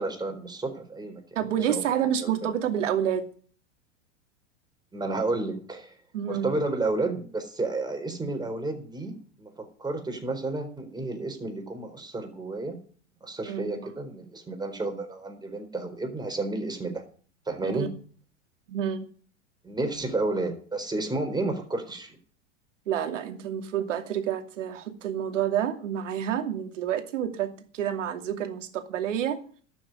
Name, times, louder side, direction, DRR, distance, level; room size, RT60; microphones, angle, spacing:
voice 1, 0.0-1.2 1.7-1.8 2.2-2.5 4.9-5.9 6.2-12.8 13.2-17.0 17.5-17.9 19.6-22.2, right 2 dB, 10° right, 4 dB, 4.1 m, -31 dB
voice 2, 1.3-3.3 6.1-6.5 13.4-13.8 17.6-17.9 18.7-19.1 22.9-29.4, right 9 dB, 75° right, 6 dB, 2.6 m, -29 dB
12.5 x 7.1 x 9.3 m, 0.43 s
hypercardioid pair, 100°, 37 cm